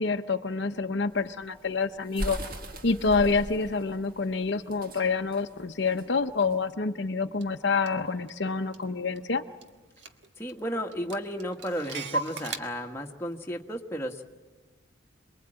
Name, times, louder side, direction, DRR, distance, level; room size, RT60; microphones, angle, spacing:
voice 1, 0.0-2.4 2.8-9.4, left 4 dB, 60° left, 7 dB, 0.8 m, -27 dB
sound 1, 1.1-6.7, right 1 dB, 45° right, 1.7 m, -39 dB
Clock, 7.4-7.5 7.9-9.3 9.6-9.7 10.0-10.6 10.9-12.6, right 2 dB, 65° right, 1.6 m, -36 dB
voice 2, 10.4-14.2, equal, 15° left, 2 dB, 1.5 m, -33 dB
27.5 x 21.5 x 8.9 m, 1.3 s
head